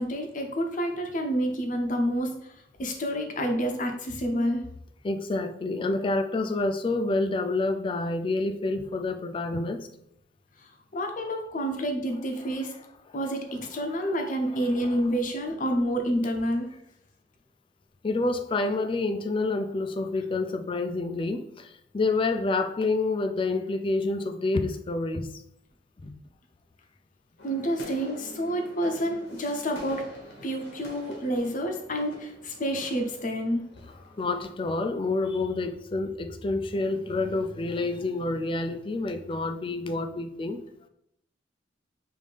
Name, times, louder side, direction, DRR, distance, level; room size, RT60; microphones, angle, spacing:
voice 1, 0.0-2.3 2.8-4.6 10.9-12.7 13.1-16.7 27.4-30.0 30.4-33.6, equal, 45° left, 4 dB, 0.7 m, -28 dB
voice 2, 5.0-9.9 12.6-12.7 14.5-15.0 18.0-25.3 26.0-26.1 34.2-40.6, left 3 dB, 30° left, 7 dB, 0.3 m, -28 dB
sound 1, 27.4-34.6, equal, 85° left, 1.3 m, -46 dB
5.0 x 2.7 x 3.4 m, 0.77 s
head